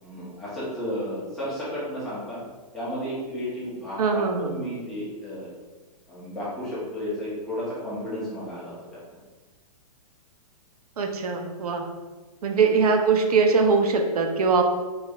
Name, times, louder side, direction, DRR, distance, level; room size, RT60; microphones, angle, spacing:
voice 1, 0.0-2.4 2.7-5.5 6.1-9.0, equal, ahead, -11 dB, 0.9 m, -33 dB
voice 2, 4.0-4.6 11.0-11.9 12.4-14.6, right 4 dB, 75° right, 4 dB, 0.7 m, -22 dB
4.7 x 3.2 x 2.4 m, 1.3 s
hypercardioid pair, 175°, 20 cm